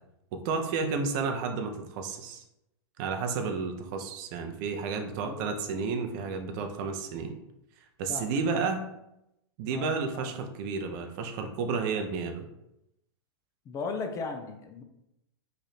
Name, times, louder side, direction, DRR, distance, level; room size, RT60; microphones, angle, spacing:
voice 1, 0.3-2.4 3.0-7.4 8.0-8.8 9.6-12.5, right 5 dB, 50° right, 5 dB, 0.6 m, -31 dB
voice 2, 8.1-8.7 9.7-10.3 11.9-12.1 13.7-14.8, left 4 dB, 25° left, 6 dB, 0.6 m, -37 dB
3.2 x 2.6 x 4.1 m, 0.85 s
hypercardioid pair, 115°, 13 cm